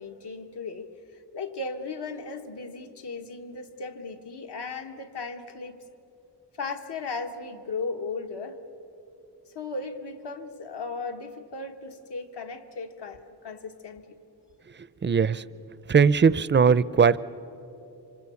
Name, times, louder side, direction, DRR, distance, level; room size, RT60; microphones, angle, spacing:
voice 1, 0.0-5.8 6.5-8.6 9.5-14.2, left 4 dB, 70° left, 5 dB, 1.6 m, -36 dB
voice 2, 15.0-15.4 15.9-17.2, right 6 dB, 25° right, 17 dB, 0.5 m, -19 dB
27.0 x 26.0 x 7.1 m, 2.9 s
wide cardioid pair, 120°, 42 cm